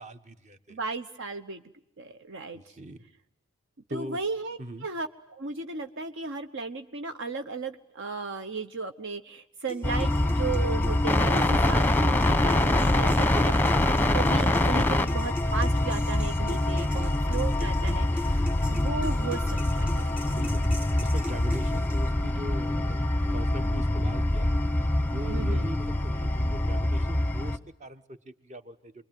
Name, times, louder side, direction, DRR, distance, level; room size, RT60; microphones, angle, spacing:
voice 1, 0.0-0.8 2.5-3.0 3.9-4.2 4.6-4.9 14.9-15.0 16.9-17.3 20.2-20.7 21.0-24.5 25.1-29.1, right 1 dB, 35° right, 10 dB, 1.4 m, -41 dB
voice 2, 0.7-1.6 2.0-2.8 3.9-13.6 14.1-19.4 19.7-20.1 23.5-23.7 25.3-25.6, right 4 dB, 60° right, 8 dB, 1.0 m, -35 dB
sound 1, 9.7-22.3, left 1 dB, 5° right, 1.9 m, -41 dB
sound 2, 9.8-27.6, left 1 dB, 10° left, 1.0 m, -25 dB
28.0 x 22.0 x 9.2 m, 0.82 s
head